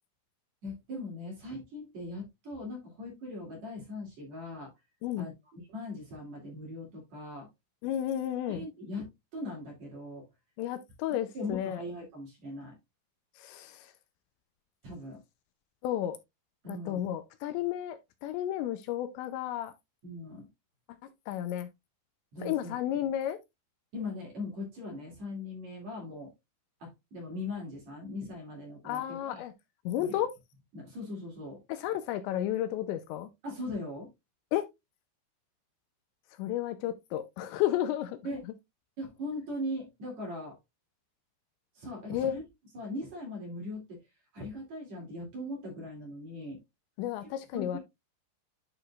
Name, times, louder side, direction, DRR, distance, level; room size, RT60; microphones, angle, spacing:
voice 1, 0.6-4.7 5.2-7.5 8.4-10.3 11.1-12.8 14.8-15.2 16.6-17.0 20.0-20.5 22.3-22.8 23.9-26.3 26.8-29.4 30.0-30.2 30.7-31.6 33.4-34.1 38.2-38.4 39.0-40.6 41.7-42.4 42.7-44.0 44.3-46.6 47.5-47.8, left 1 dB, 45° right, 3.2 m, -40 dB
voice 2, 7.8-8.7 10.6-11.8 13.4-13.9 15.8-16.2 16.7-19.7 21.3-21.7 22.4-23.4 28.8-29.5 29.9-30.3 31.8-33.3 34.5-34.6 36.4-38.2 42.1-42.3 47.0-47.8, left 12 dB, 80° left, 2.8 m, -32 dB
11.5 x 4.8 x 2.4 m
omnidirectional pair, 5.3 m